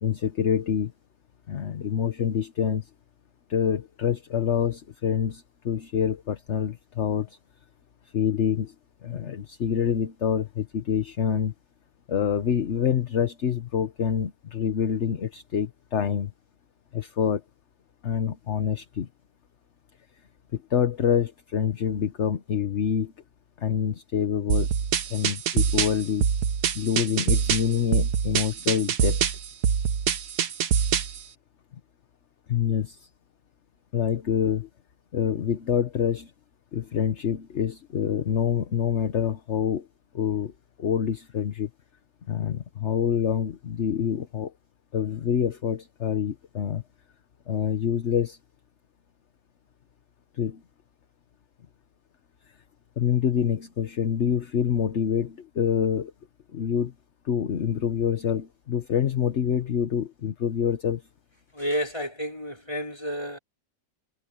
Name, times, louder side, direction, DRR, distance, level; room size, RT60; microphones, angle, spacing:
voice 1, 0.0-0.9 1.5-2.9 3.5-7.4 8.1-8.7 9.0-11.5 12.1-16.3 16.9-17.4 18.0-19.1 20.5-23.1 23.6-24.7 25.1-26.3 26.7-29.3 32.5-33.1 33.9-34.7 35.1-36.3 36.7-39.9 40.1-40.5 40.8-41.7 42.3-44.5 44.9-46.8 47.5-48.4 50.3-50.6 53.0-56.1 56.5-56.9 57.2-61.0, left 8 dB, 45° left, 1.1 m, -26 dB
sound 1, 24.5-31.2, right 7 dB, 65° right, 1.6 m, -24 dB
voice 2, 61.5-63.4, equal, 15° left, 5.0 m, -30 dB
omnidirectional pair, 1.9 m